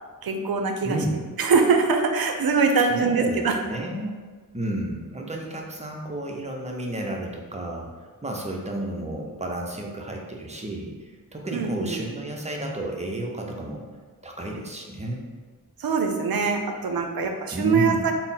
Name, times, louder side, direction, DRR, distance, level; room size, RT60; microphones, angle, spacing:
voice 1, 0.2-1.0 1.4-3.5 11.5-12.0 15.8-18.1, right 4 dB, 70° right, 4 dB, 0.5 m, -23 dB
voice 2, 0.8-1.2 2.9-4.2 4.5-13.9 14.2-15.2 17.5-18.1, right 1 dB, 20° right, 0 dB, 0.6 m, -32 dB
3.6 x 2.0 x 4.1 m, 1.4 s
wide cardioid pair, 65°, 38 cm